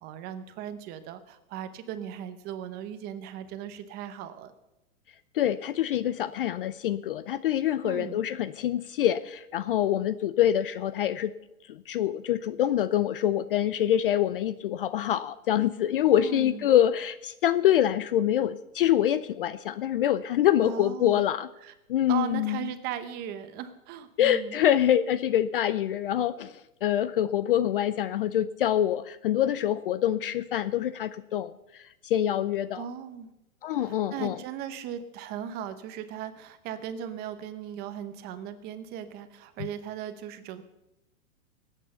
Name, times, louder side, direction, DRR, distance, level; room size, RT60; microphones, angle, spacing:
voice 1, 0.0-4.5 7.8-8.2 16.1-16.7 20.6-21.2 21.6-21.7 22.1-24.6 32.7-33.3 33.8-40.6, right 9 dB, 20° right, 11 dB, 0.9 m, -38 dB
voice 2, 5.3-11.3 11.7-21.5 21.9-22.7 24.2-26.5 26.8-31.5 32.0-32.8 33.6-34.4, left 11 dB, 40° left, 15 dB, 0.5 m, -25 dB
19.0 x 9.0 x 6.9 m, 0.94 s
hypercardioid pair, 150°, 43 cm